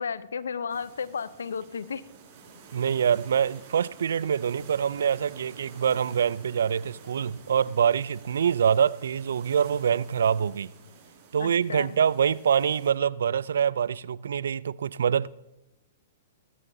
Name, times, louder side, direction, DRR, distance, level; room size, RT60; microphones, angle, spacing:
voice 1, 0.0-2.0 11.4-12.0, left 6 dB, 80° left, 0.7 m, -33 dB
sound 1, 0.7-12.9, right 5 dB, 45° right, 5.8 m, -50 dB
voice 2, 2.7-10.7 11.3-15.3, right 8 dB, 75° right, 0.3 m, -25 dB
17.5 x 14.5 x 2.7 m
hypercardioid pair, 115°, 0 cm